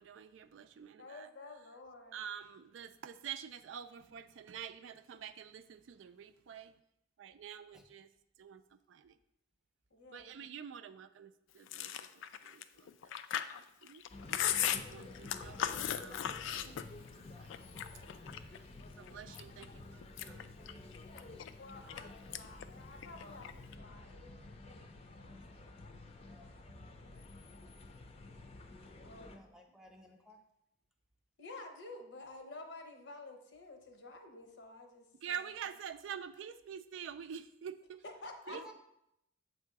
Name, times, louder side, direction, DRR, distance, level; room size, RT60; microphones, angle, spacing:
voice 1, 0.0-1.3 2.1-6.7 7.2-8.1 8.4-9.2 10.1-12.9 13.5-14.0 14.6-17.5 19.0-20.6 20.9-21.4 35.2-38.0 38.5-38.7, right 8 dB, 85° right, 11 dB, 0.4 m, -47 dB
voice 2, 1.0-2.2 9.9-10.4 21.6-23.5 23.8-25.7 27.0-27.3 29.0-29.5 31.4-35.5 38.0-38.7, left 2 dB, 65° left, 5 dB, 0.8 m, -51 dB
Chewing mastication, 11.7-17.2 17.5-18.6 19.1-19.7 20.0-22.0 22.3-22.7 22.9-23.8, left 10 dB, 85° left, 0.3 m, -37 dB
sound 1, 14.1-29.4, left 2 dB, 35° left, 0.5 m, -51 dB
voice 3, 29.2-30.4 38.5-38.7, equal, 5° right, 2 dB, 0.6 m, -56 dB
7.5 x 2.7 x 4.6 m, 0.80 s
head